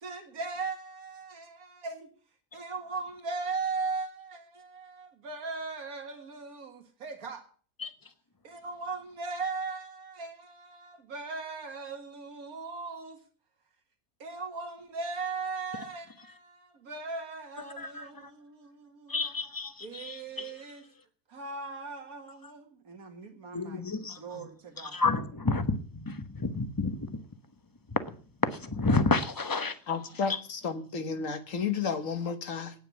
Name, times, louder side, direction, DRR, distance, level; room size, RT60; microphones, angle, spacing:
voice 1, 0.0-2.1 2.5-7.4 8.4-13.2 14.2-19.2 19.8-20.8 21.3-23.8 24.2-25.0, right 4 dB, 85° right, 2.2 m, -38 dB
voice 2, 17.8-18.3 19.1-20.6 23.5-24.5 24.8-27.2 27.9-28.1 28.4-29.8 30.3-30.4, left 3 dB, 15° left, 0.9 m, -30 dB
voice 3, 29.9-32.7, left 6 dB, 65° left, 1.6 m, -32 dB
9.2 x 9.0 x 9.4 m
omnidirectional pair, 1.5 m